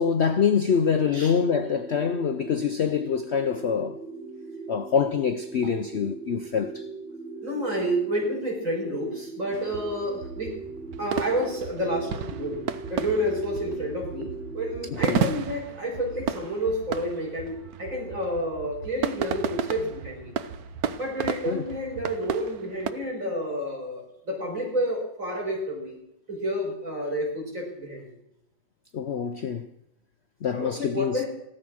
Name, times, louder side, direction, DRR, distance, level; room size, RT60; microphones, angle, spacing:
voice 1, 0.0-4.0 4.7-6.9 14.9-15.3 21.4-21.6 28.9-29.7 30.4-31.2, left 7 dB, 80° left, 0.6 m, -25 dB
sound 1, 0.9-15.3, right 4 dB, 80° right, 4.0 m, -40 dB
voice 2, 7.4-10.6 11.0-12.6 12.9-20.3 20.9-26.0 26.3-28.1 30.5-31.3, equal, 40° right, 6.3 m, -30 dB
sound 2, 9.5-22.9, right 7 dB, 60° right, 1.3 m, -33 dB
16.0 x 13.0 x 6.2 m
omnidirectional pair, 2.0 m